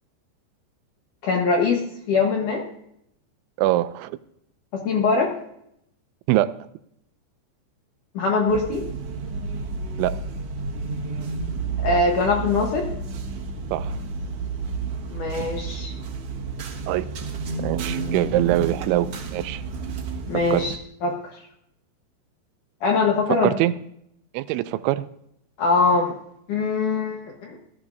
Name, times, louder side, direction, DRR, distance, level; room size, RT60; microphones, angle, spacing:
voice 1, 1.2-1.8 2.1-2.6 4.7-5.3 8.2-8.9 11.8-12.9 15.1-15.9 20.3-20.8 21.0-21.2 22.8-23.5 25.6-26.2 26.5-27.6, left 4 dB, 65° left, 2.1 m, -22 dB
voice 2, 3.6-4.2 6.3-6.5 10.0-10.2 13.7-14.0 16.9-17.1 17.6-19.6 20.5-20.7 23.3-23.7 24.3-25.1, right 15 dB, 90° right, 3.0 m, -23 dB
sound 1, 8.5-20.8, right 4 dB, 65° right, 1.5 m, -31 dB
18.5 x 13.0 x 2.7 m
omnidirectional pair, 5.2 m